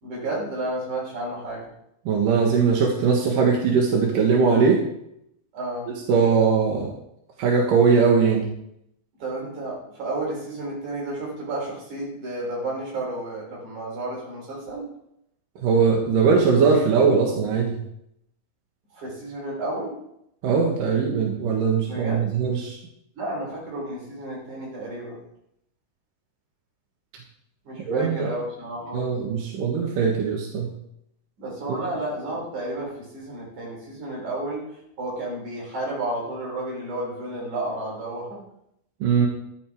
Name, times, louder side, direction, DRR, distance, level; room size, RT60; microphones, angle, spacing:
voice 1, 0.0-1.7 5.5-5.9 9.2-14.9 18.9-19.9 21.9-22.4 23.2-25.2 27.7-29.2 31.4-38.4, right 2 dB, 70° right, -4 dB, 5.2 m, -32 dB
voice 2, 2.1-4.8 6.1-6.9 7.4-8.5 15.6-17.8 20.4-22.8 27.9-28.3 28.9-30.7 31.7-31.8 39.0-39.3, right 5 dB, 85° right, -1 dB, 3.2 m, -20 dB
14.0 x 11.0 x 3.6 m, 0.77 s
omnidirectional pair, 3.7 m